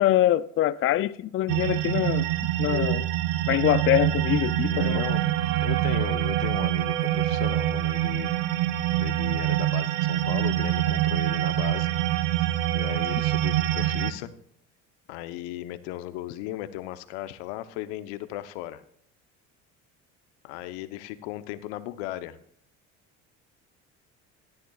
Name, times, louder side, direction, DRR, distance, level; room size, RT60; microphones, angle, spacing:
voice 1, 0.0-2.3 2.6-3.1 3.5-5.0, left 13 dB, 40° left, 0.4 m, -24 dB
sound 1, 1.5-14.1, right 14 dB, 80° right, 0.8 m, -25 dB
voice 2, 4.7-5.2 5.6-8.3 9.0-11.9 12.7-14.3 15.1-18.8 20.4-22.4, left 14 dB, 85° left, 0.9 m, -36 dB
13.5 x 11.0 x 2.4 m
supercardioid pair, 85°, 33 cm